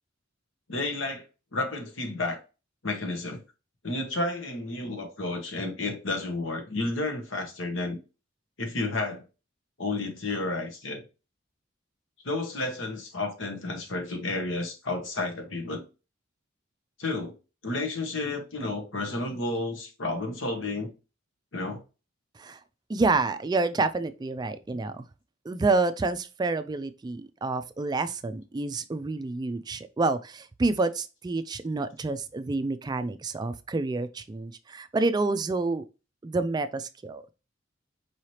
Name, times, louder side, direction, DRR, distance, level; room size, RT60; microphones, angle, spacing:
voice 1, 0.7-1.3 1.5-2.4 2.8-3.4 3.8-8.0 8.6-9.2 9.8-11.0 12.2-15.8 17.0-17.3 17.6-20.9 21.5-21.8, left 2 dB, 80° left, 1.2 m, -31 dB
voice 2, 22.9-25.0 25.5-35.8 36.2-37.2, right 3 dB, 20° right, 0.3 m, -28 dB
4.8 x 3.2 x 2.8 m
head